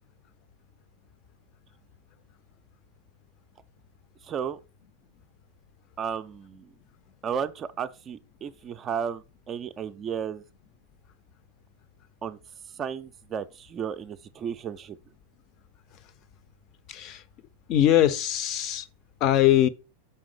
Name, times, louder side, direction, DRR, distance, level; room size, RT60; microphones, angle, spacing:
voice 1, 4.2-4.6 6.0-6.7 7.2-10.4 12.2-12.4 12.8-15.0, right 7 dB, 25° right, 0.4 m, -33 dB
voice 2, 16.9-17.2 17.7-18.9 19.2-19.7, left 12 dB, 40° left, 0.5 m, -21 dB
5.6 x 3.7 x 4.7 m
figure-of-eight pair, 90°, 0 cm